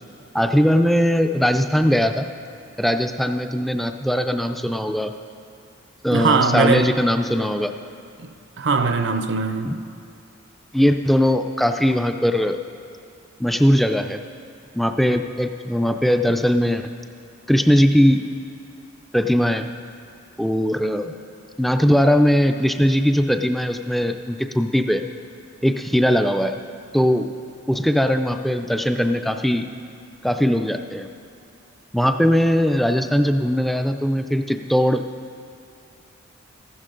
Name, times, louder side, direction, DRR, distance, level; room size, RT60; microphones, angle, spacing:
voice 1, 0.3-2.3 2.8-5.1 6.0-7.7 9.6-9.8 10.7-12.6 13.4-14.2 14.7-16.9 17.5-18.2 19.1-19.7 20.4-21.1 21.6-25.0 25.6-26.6 26.9-27.3 27.7-29.7 30.2-31.1 31.9-35.0, equal, ahead, 0.3 m, -20 dB
voice 2, 6.1-6.9 8.2-8.3 8.6-9.7, right 4 dB, 60° right, 0.5 m, -20 dB
14.5 x 12.0 x 3.8 m
head